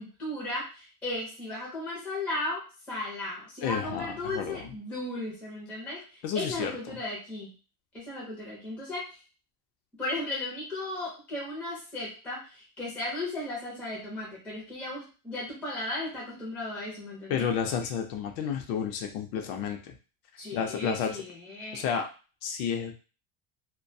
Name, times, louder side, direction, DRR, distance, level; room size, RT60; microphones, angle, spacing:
voice 1, 0.0-2.6 2.9-6.0 6.3-7.5 7.9-9.0 10.0-17.5 20.4-21.9, left 2 dB, 5° left, -6 dB, 0.4 m, -35 dB
voice 2, 3.6-4.7 6.2-7.0 17.3-20.0 20.5-21.2 21.7-22.1 22.4-22.9, left 7 dB, 65° left, 5 dB, 0.6 m, -31 dB
2.3 x 2.2 x 2.6 m, 0.35 s
cardioid pair, 165°, 46 cm